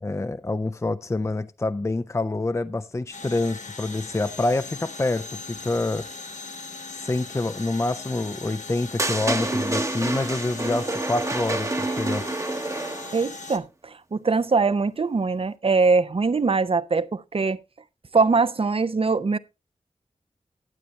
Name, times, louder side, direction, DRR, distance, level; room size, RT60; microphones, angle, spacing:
voice 1, 0.0-6.1 6.9-12.2, left 2 dB, 25° left, 0.5 m, -27 dB
sound 1, 3.1-13.6, left 3 dB, 80° left, 1.1 m, -39 dB
sound 2, 9.0-13.2, right 2 dB, 25° right, 0.9 m, -28 dB
voice 2, 13.1-17.6 18.1-19.4, right 4 dB, 50° right, 0.6 m, -22 dB
12.5 x 8.4 x 3.2 m
wide cardioid pair, 60°, 12 cm